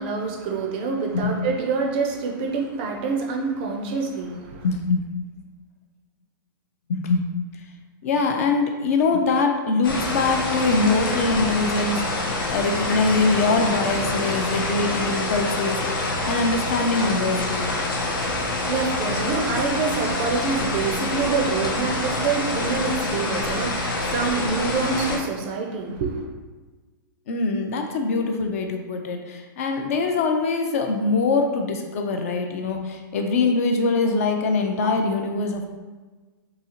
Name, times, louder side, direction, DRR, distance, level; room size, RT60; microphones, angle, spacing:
voice 1, 0.0-4.7 18.2-26.2, right 4 dB, 30° right, 2 dB, 0.4 m, -26 dB
voice 2, 4.6-5.0 6.9-7.2 7.5-7.7 8.0-17.7 27.3-35.7, left 3 dB, 40° left, 4 dB, 0.4 m, -23 dB
sound 1, 9.8-25.2, left 2 dB, 80° left, 0.8 m, -26 dB
3.9 x 2.7 x 2.8 m, 1.3 s
hypercardioid pair, 170°, 12 cm